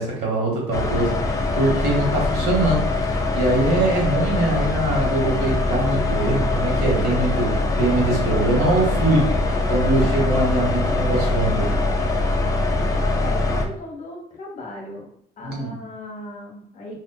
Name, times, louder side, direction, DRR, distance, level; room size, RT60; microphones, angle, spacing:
voice 1, 0.0-11.7 15.4-15.7, right 2 dB, 70° right, -3 dB, 1.1 m, -23 dB
sound 1, 0.7-13.6, left 2 dB, 20° left, 0.4 m, -22 dB
voice 2, 13.1-15.1 15.4-17.0, left 1 dB, 45° left, 0 dB, 0.9 m, -37 dB
2.4 x 2.4 x 2.2 m, 0.69 s
cardioid pair, 110°, 17 cm